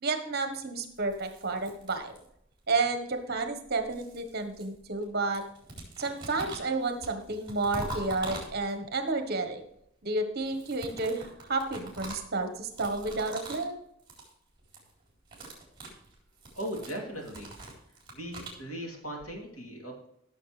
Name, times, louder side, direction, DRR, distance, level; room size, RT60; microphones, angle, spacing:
voice 1, 0.0-2.1 2.7-5.4 6.0-9.6 10.0-13.8, right 3 dB, 50° right, 6 dB, 1.3 m, -31 dB
sound 1, 0.9-2.5 3.5-5.1 5.3-9.0 10.4-13.7 14.0-14.3 14.6-14.9 15.2-18.6, right 1 dB, 20° right, 3.8 m, -44 dB
voice 2, 16.6-17.6 18.1-20.1, equal, 75° left, 0 dB, 3.1 m, -38 dB
15.0 x 6.9 x 3.3 m, 0.76 s
head